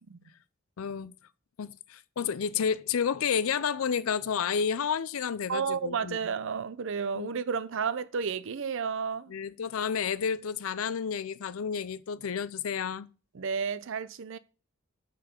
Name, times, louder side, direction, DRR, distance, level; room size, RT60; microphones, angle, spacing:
voice 1, 0.8-1.1 1.6-6.2 7.1-7.3 9.3-13.1, left 7 dB, 90° left, 0.5 m, -30 dB
voice 2, 5.5-9.3 13.3-14.4, right 6 dB, 65° right, 0.5 m, -32 dB
6.6 x 5.6 x 5.2 m
head